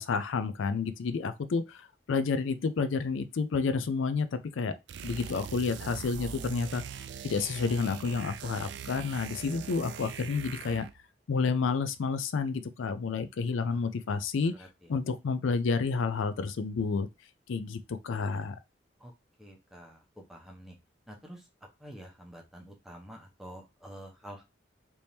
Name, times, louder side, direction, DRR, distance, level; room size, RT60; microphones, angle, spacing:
voice 1, 0.0-4.8 5.0-6.8 7.2-10.9 11.3-14.5 14.9-17.1 17.5-18.6, left 4 dB, 80° left, 0.4 m, -30 dB
sound 1, 4.9-11.0, right 7 dB, 65° right, 0.3 m, -42 dB
voice 2, 19.4-20.0 20.3-20.8 21.1-21.4 21.8-24.4, equal, ahead, 0.7 m, -47 dB
3.4 x 3.0 x 2.7 m
head